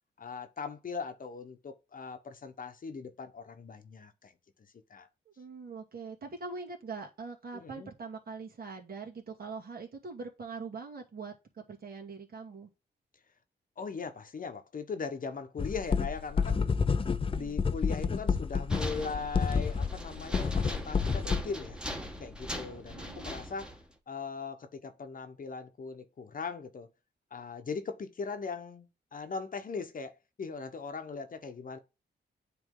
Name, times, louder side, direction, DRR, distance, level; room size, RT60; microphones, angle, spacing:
voice 1, 0.2-4.3 4.9-5.1 7.5-7.9 13.8-16.8 17.2-21.8 22.2-23.8 24.1-26.9 27.3-31.8, left 5 dB, 50° left, 1.1 m, -40 dB
voice 2, 5.4-12.7 17.3-17.6 22.9-23.4, right 4 dB, 55° right, 2.4 m, -43 dB
sound 1, 15.6-21.4, left 5 dB, 30° left, 0.6 m, -29 dB
sound 2, 18.7-23.9, equal, 5° right, 1.4 m, -40 dB
9.3 x 3.4 x 3.8 m
cardioid pair, 85°, 18 cm